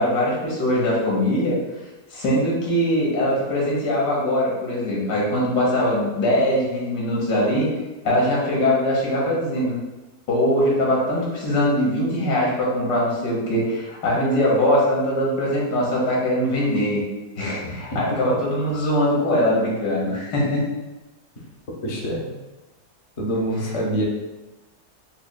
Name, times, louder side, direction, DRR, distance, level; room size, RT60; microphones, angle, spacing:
voice 1, 0.0-1.6 2.1-7.7 8.0-9.8 10.3-17.0 17.4-20.6, left 1 dB, 90° left, -5 dB, 1.7 m, -21 dB
voice 2, 21.8-22.2 23.2-24.0, right 1 dB, 45° left, -3 dB, 0.4 m, -25 dB
6.5 x 2.3 x 2.2 m, 1.1 s
omnidirectional pair, 1.7 m